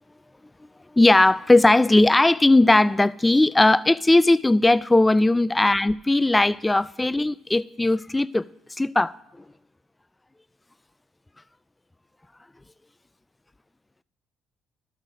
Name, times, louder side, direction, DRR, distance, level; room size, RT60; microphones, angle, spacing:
voice 1, 0.9-8.5 8.8-9.4, left 2 dB, 15° left, 0.3 m, -18 dB
12.0 x 6.5 x 3.8 m
supercardioid pair, 75°, 0 cm